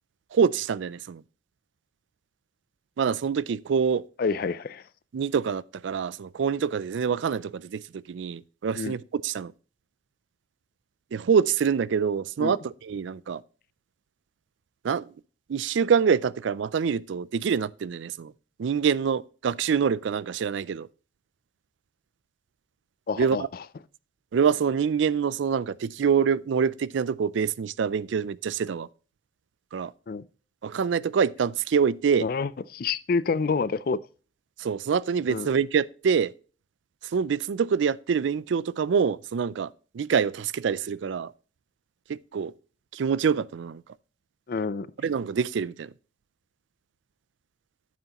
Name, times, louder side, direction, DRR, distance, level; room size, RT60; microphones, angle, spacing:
voice 1, 0.3-1.2 3.0-4.1 5.1-9.5 11.1-13.4 14.8-15.1 15.5-18.3 18.6-20.9 23.2-23.5 24.3-28.9 29.7-29.9 30.6-32.3 34.6-36.3 37.0-41.3 42.1-42.5 42.9-43.8 45.0-45.9, right 6 dB, 70° right, 0.4 m, -25 dB
voice 2, 4.2-4.8 8.8-8.9 12.4-12.5 23.1-23.4 30.1-30.3 32.2-34.0 35.3-35.5 44.5-44.9, left 4 dB, 50° left, 0.4 m, -27 dB
9.3 x 8.1 x 2.9 m
head